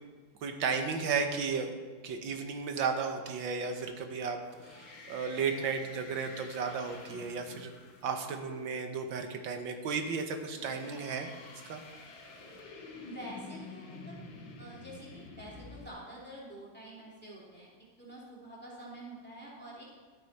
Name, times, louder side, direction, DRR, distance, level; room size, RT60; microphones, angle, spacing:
voice 1, 0.4-1.7 2.0-4.4 4.7-7.7 8.0-11.3 11.7-11.8, right 5 dB, 70° right, 6 dB, 1.7 m, -34 dB
sound 1, 4.5-8.9 10.4-15.9, left 3 dB, 70° left, 2.1 m, -49 dB
voice 2, 13.0-14.1 14.6-17.7 18.0-19.8, right 1 dB, 5° left, -6 dB, 2.7 m, -47 dB
13.0 x 8.6 x 4.2 m, 1.4 s
omnidirectional pair, 2.2 m